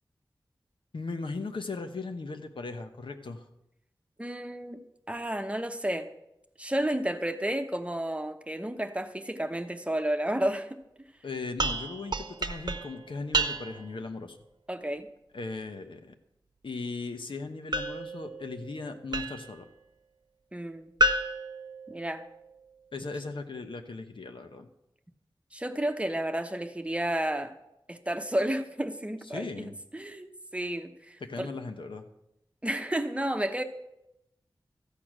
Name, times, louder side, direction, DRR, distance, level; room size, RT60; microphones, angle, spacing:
voice 1, 0.9-3.4 11.2-14.4 15.3-16.1 16.6-19.7 22.9-24.7 29.3-29.7 31.2-32.0, left 3 dB, 75° left, 6 dB, 1.1 m, -38 dB
voice 2, 4.2-4.8 5.1-6.1 6.6-10.8 14.7-15.1 20.5-20.9 21.9-22.2 25.5-27.5 27.9-29.5 29.9-31.5 32.6-33.6, right 1 dB, 15° right, 7 dB, 0.9 m, -31 dB
sound 1, 11.6-14.0 17.7-19.6 21.0-22.5, right 1 dB, 55° right, 0.9 m, -31 dB
13.5 x 8.5 x 6.1 m, 0.86 s
wide cardioid pair, 85°, 9 cm